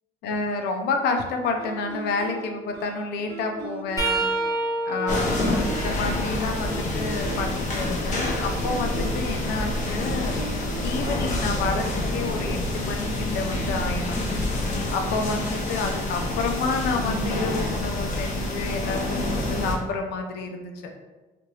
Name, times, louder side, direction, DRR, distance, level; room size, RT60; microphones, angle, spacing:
voice 1, 0.2-4.2 4.9-10.4 10.8-14.2 14.9-20.7, left 3 dB, 80° left, 4 dB, 0.5 m, -29 dB
sound 1, 1.6-11.7, right 4 dB, 80° right, 0.5 m, -40 dB
sound 2, 4.0-7.7 8.3-10.2 13.1-13.3 14.5-14.7 16.0-16.1, right 2 dB, 20° right, 0.9 m, -31 dB
sound 3, 5.1-19.7, left 1 dB, 45° left, 0.7 m, -27 dB
3.0 x 2.5 x 2.8 m, 1.2 s
cardioid pair, 110°, 17 cm